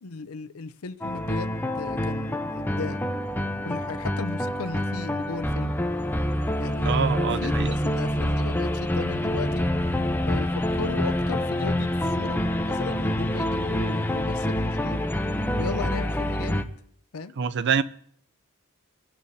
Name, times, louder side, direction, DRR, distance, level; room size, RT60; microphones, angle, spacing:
voice 1, 0.0-3.0 3.6-5.7 6.6-9.6 10.2-15.0 15.6-16.6 17.1-17.3, left 4 dB, 70° left, 0.6 m, -36 dB
sound 1, 1.0-16.6, left 1 dB, 10° left, 0.6 m, -26 dB
voice 2, 6.8-7.7 17.4-17.8, right 6 dB, 50° right, 0.5 m, -25 dB
25.0 x 11.5 x 2.8 m
head